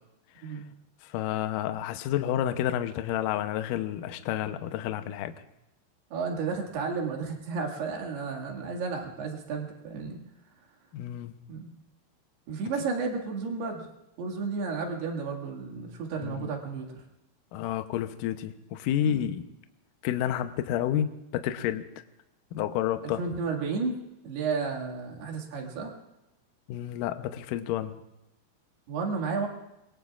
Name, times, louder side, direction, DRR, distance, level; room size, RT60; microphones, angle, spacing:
voice 1, 1.0-5.3 10.9-11.4 16.2-16.5 17.5-19.5 20.0-21.9 22.5-23.2 26.7-28.0, left 11 dB, 75° left, 8 dB, 2.0 m, -30 dB
voice 2, 6.1-10.2 11.5-11.7 12.5-13.9 14.2-17.0 19.0-19.2 23.0-24.0 24.2-25.9 28.9-29.5, right 4 dB, 75° right, 1 dB, 4.1 m, -32 dB
27.5 x 21.5 x 2.4 m, 0.91 s
omnidirectional pair, 4.7 m